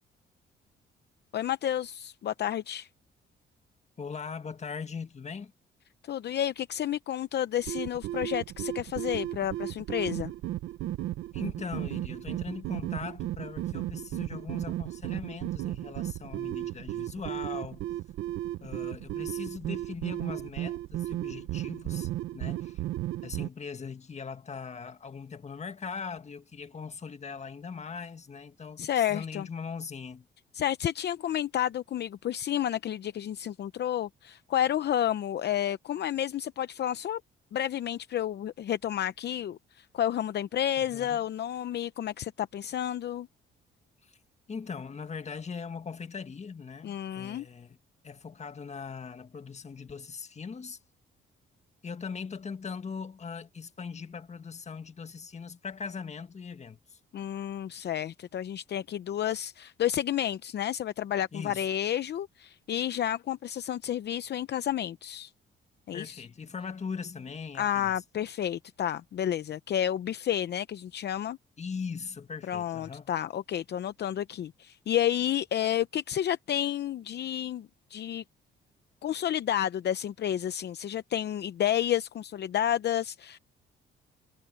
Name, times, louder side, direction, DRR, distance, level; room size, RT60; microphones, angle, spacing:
voice 1, 1.3-2.9 6.0-10.3 28.8-29.5 30.5-37.2 37.5-43.3 46.8-47.5 57.1-65.3 65.9-66.2 67.6-71.4 72.5-78.2 79.0-83.4, left 11 dB, 60° left, 0.8 m, -30 dB
voice 2, 4.0-5.5 11.3-17.9 18.6-22.8 23.2-30.2 40.8-41.2 44.0-44.2 44.5-47.8 48.0-50.8 51.8-57.0 61.3-61.7 65.9-67.9 71.6-73.1, left 5 dB, 35° left, 1.8 m, -40 dB
sound 1, 7.6-23.5, right 14 dB, 85° right, 0.8 m, -35 dB
cardioid pair, 90°, 20 cm